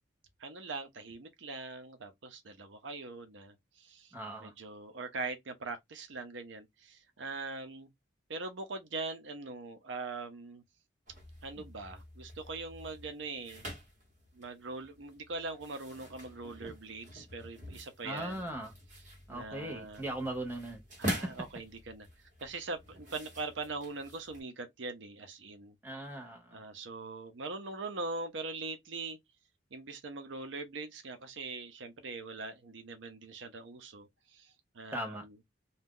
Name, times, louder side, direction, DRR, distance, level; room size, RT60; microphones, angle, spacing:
voice 1, 0.4-4.1 4.4-7.9 8.3-10.6 11.4-13.6 14.3-18.4 19.3-20.0 21.0-22.1 22.4-25.7 26.5-29.2 29.7-35.3, right 3 dB, 75° right, 0.7 m, -42 dB
voice 2, 4.1-4.5 18.0-18.7 19.3-20.8 21.1-21.3 25.8-26.6 34.9-35.2, right 1 dB, 10° right, 0.9 m, -38 dB
sound 1, 11.1-24.4, equal, 40° right, 1.5 m, -47 dB
2.7 x 2.3 x 3.6 m
head